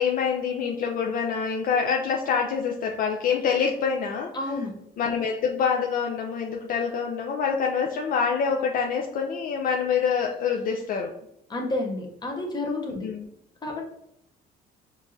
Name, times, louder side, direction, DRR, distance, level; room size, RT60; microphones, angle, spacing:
voice 1, 0.0-4.3 5.0-11.1 13.0-13.2, left 6 dB, 55° left, 1 dB, 0.4 m, -26 dB
voice 2, 4.3-4.8 11.5-13.1 13.6-13.8, left 2 dB, 25° left, 1 dB, 0.8 m, -30 dB
4.5 x 2.5 x 2.7 m, 0.79 s
cardioid pair, 110°, 17 cm